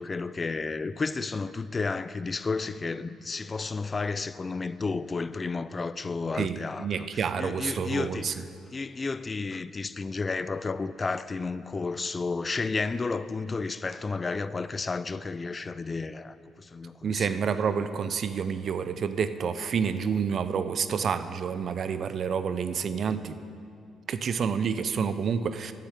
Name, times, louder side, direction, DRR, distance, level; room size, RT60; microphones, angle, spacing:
voice 1, 0.0-8.4 8.7-17.5, left 4 dB, 30° left, 0.3 m, -32 dB
voice 2, 6.4-8.3 17.0-23.4 24.1-25.7, right 6 dB, 55° right, 0.5 m, -29 dB
9.7 x 6.6 x 8.1 m
cardioid pair, 90°, 0 cm